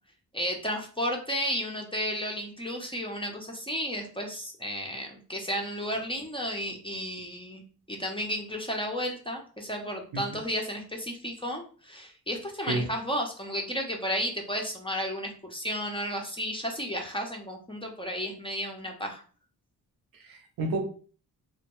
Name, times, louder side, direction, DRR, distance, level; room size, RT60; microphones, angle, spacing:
voice 1, 0.3-19.2, equal, 15° left, 0.5 m, -33 dB
voice 2, 20.1-20.8, right 2 dB, 60° right, 0.7 m, -31 dB
2.1 x 2.1 x 2.9 m
cardioid pair, 65°, 39 cm